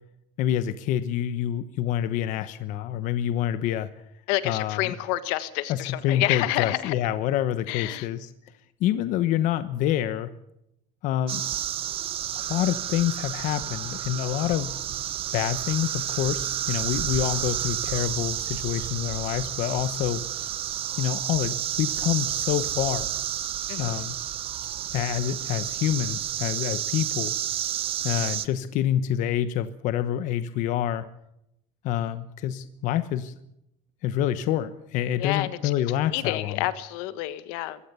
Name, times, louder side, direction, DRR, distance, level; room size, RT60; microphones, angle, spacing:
voice 1, 0.4-3.9 4.4-4.9 5.7-8.3 8.8-10.3 11.0-11.5 12.3-14.8 15.3-20.2 21.0-23.2 23.8-24.2 24.9-27.3 28.0-31.1 31.8-33.3 34.0-36.7, left 11 dB, 50° left, 12 dB, 1.0 m, -27 dB
voice 2, 4.3-6.9 7.7-8.1 23.7-24.0 35.2-35.6 36.1-37.8, left 16 dB, 80° left, 13 dB, 1.5 m, -28 dB
sound 1, 11.3-28.5, right 12 dB, 35° right, 0.8 m, -31 dB
24.0 x 16.0 x 6.9 m, 0.80 s
cardioid pair, 175°, 17 cm